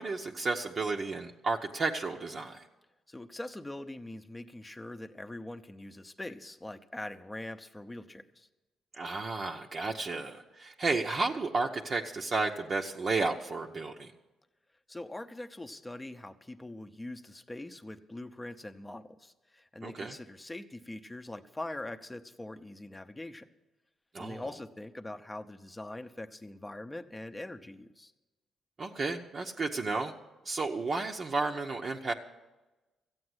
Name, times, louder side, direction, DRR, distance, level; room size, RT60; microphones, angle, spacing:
voice 1, 0.0-2.6 8.9-14.1 19.8-20.2 24.1-24.4 28.8-30.2 30.4-32.1, right 3 dB, 40° right, 1 dB, 0.8 m, -32 dB
voice 2, 3.1-8.5 14.9-23.5 24.2-28.1, left 1 dB, 15° left, 9 dB, 0.8 m, -43 dB
14.5 x 8.7 x 8.0 m, 1.1 s
cardioid pair, 90°, 0 cm